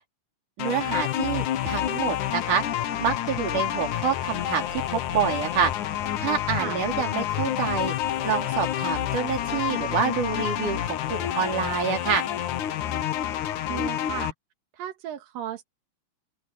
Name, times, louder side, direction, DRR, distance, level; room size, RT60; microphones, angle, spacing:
sound 1, 0.6-14.3, left 11 dB, 70° left, 2.6 m, -28 dB
voice 1, 0.6-5.7 6.2-12.3, right 7 dB, 65° right, 4.7 m, -27 dB
voice 2, 13.6-14.3 14.7-15.7, right 11 dB, 90° right, 3.3 m, -35 dB
open air
omnidirectional pair, 3.9 m